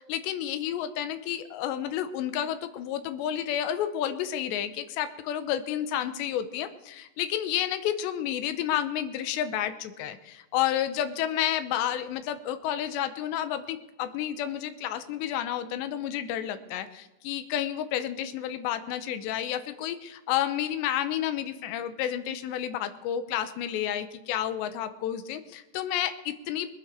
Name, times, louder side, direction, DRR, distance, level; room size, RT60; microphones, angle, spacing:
voice 1, 0.0-26.7, left 10 dB, 85° left, 10 dB, 3.1 m, -30 dB
21.0 x 9.2 x 6.4 m, 1.0 s
omnidirectional pair, 5.1 m